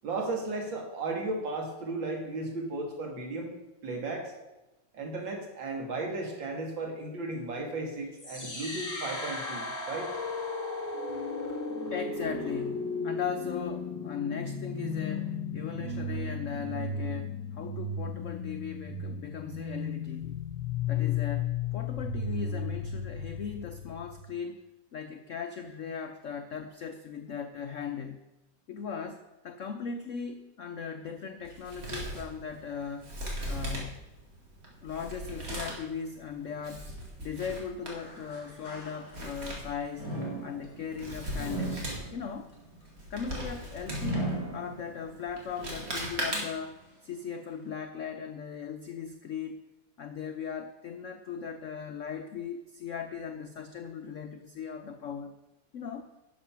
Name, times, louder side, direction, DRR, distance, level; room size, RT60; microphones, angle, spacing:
voice 1, 0.0-3.5 3.8-4.3 4.9-10.1, right 2 dB, 75° right, 2 dB, 2.5 m, -35 dB
sound 1, 8.2-24.2, left 4 dB, 10° left, 2.5 m, -35 dB
voice 2, 11.9-20.4 20.9-24.6 24.9-28.2 28.7-33.1 33.5-34.1 34.8-36.9 37.2-40.1 40.4-42.5 43.1-49.6 50.0-55.4 55.7-56.1, left 6 dB, 75° left, 6 dB, 0.7 m, -38 dB
Male speech man speaking, 31.4-46.8, right 1 dB, 45° right, 2.6 m, -40 dB
sound 2, 37.9-39.5 39.9-45.2 45.7-45.8 46.6-46.7, right 2 dB, 45° left, 3.9 m, -38 dB
11.5 x 6.8 x 5.7 m, 1.0 s
omnidirectional pair, 2.1 m